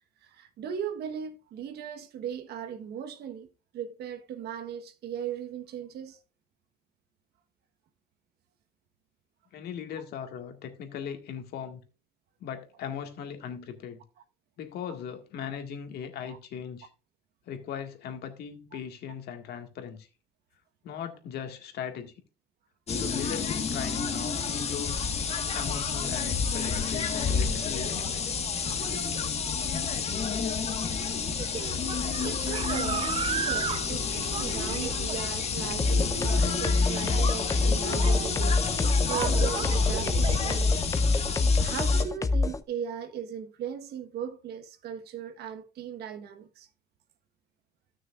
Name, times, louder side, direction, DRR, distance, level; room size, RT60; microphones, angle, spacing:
voice 1, 0.2-3.5 3.7-6.2 16.3-16.4 32.1-40.9 41.6-46.7, right 8 dB, 70° right, 1.3 m, -38 dB
voice 2, 9.5-11.8 12.4-14.0 14.6-16.9 17.5-20.1 20.8-22.1 22.9-25.0 25.5-28.0, left 8 dB, 70° left, 1.8 m, -38 dB
sound 1, 22.9-42.0, left 5 dB, 40° left, 1.6 m, -30 dB
sound 2, 31.3-40.6, right 8 dB, 35° right, 0.4 m, -36 dB
sound 3, 35.8-42.6, left 3 dB, 20° left, 0.6 m, -25 dB
15.5 x 6.3 x 2.4 m
cardioid pair, 110°, 17 cm